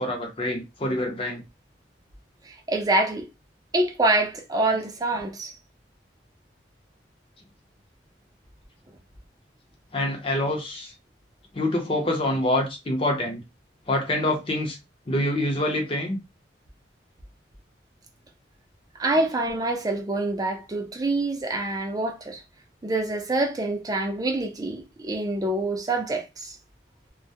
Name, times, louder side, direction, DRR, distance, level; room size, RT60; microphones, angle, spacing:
voice 1, 0.0-1.4 9.9-10.9 11.5-13.4 13.9-14.8 15.1-16.2, left 1 dB, 30° left, 0.6 m, -26 dB
voice 2, 2.5-3.3 3.7-5.5 19.0-22.4 22.8-26.5, right 2 dB, 20° right, 0.4 m, -26 dB
2.2 x 2.0 x 2.7 m
head